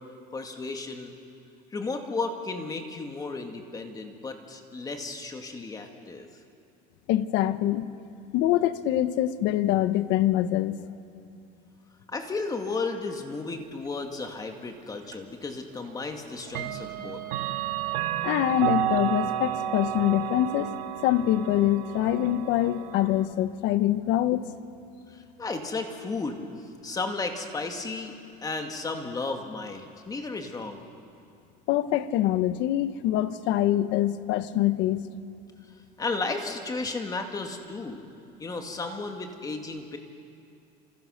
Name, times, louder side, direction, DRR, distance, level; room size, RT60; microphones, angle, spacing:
voice 1, 0.3-1.2 1.7-6.3 12.1-17.2 25.1-26.4 26.8-30.8 36.0-38.0 38.4-40.0, left 3 dB, 20° left, 4 dB, 2.3 m, -34 dB
voice 2, 7.1-7.9 8.3-10.8 18.2-20.8 21.0-24.4 31.7-35.0, left 13 dB, 65° left, 12 dB, 1.2 m, -24 dB
Clock, 15.1-15.2 16.5-23.3, right 12 dB, 90° right, 1.6 m, -31 dB
29.5 x 27.5 x 6.6 m, 2.4 s
cardioid pair, 145°, 21 cm